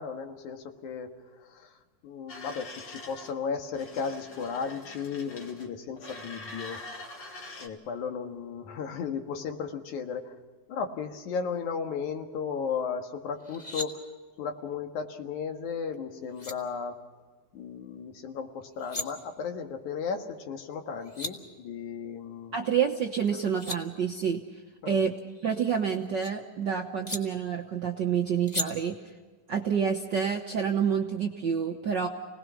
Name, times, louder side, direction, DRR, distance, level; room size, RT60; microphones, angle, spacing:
voice 1, 0.0-6.8 7.2-7.3 7.6-10.4 10.7-14.1 14.4-17.0 17.5-22.7 24.8-25.0, left 6 dB, 80° left, 5 dB, 3.1 m, -35 dB
sound 1, 2.3-3.3 3.7-5.7 6.0-7.7, left 2 dB, 40° left, 2.3 m, -44 dB
sound 2, 13.4-13.9 15.9-16.0 16.3-16.5 18.6-19.1 20.7-20.8 21.0-21.3 23.3-23.8 25.3-26.3 27.1-27.2 28.5-28.7, left 2 dB, 20° left, 1.4 m, -36 dB
voice 2, 22.5-24.4 24.9-25.1 25.4-29.0 29.5-32.1, right 7 dB, 60° right, 2 dB, 1.1 m, -28 dB
29.0 x 19.5 x 5.8 m, 1.4 s
omnidirectional pair, 3.4 m